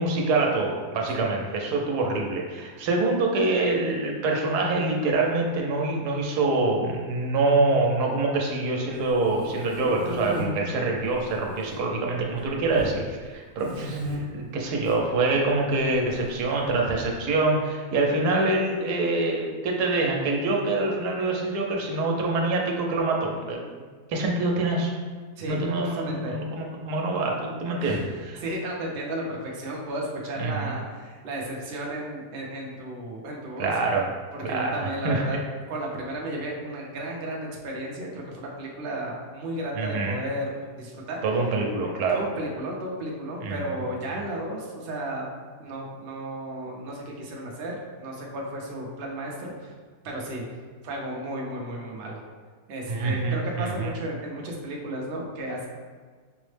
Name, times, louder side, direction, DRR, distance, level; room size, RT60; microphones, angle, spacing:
voice 1, 0.0-23.6 24.1-24.9 25.5-28.4 30.4-30.7 33.6-34.1 34.4-35.2 39.7-40.2 41.2-42.2 43.4-43.7 52.9-53.9, right 2 dB, 85° right, 0 dB, 1.2 m, -25 dB
sound 1, 9.0-10.4 11.1-11.7 12.0-12.9 13.6-14.2 14.7-15.0 16.1-17.0, equal, 75° left, 1.8 m, -35 dB
voice 2, 25.4-26.4 27.8-33.7 34.3-35.4 35.7-40.5 40.8-41.2 42.1-45.2 45.6-49.7 50.0-50.4 50.8-52.2 52.7-55.7, right 1 dB, 55° right, -2 dB, 0.6 m, -33 dB
5.6 x 2.0 x 3.2 m, 1.5 s
omnidirectional pair, 1.7 m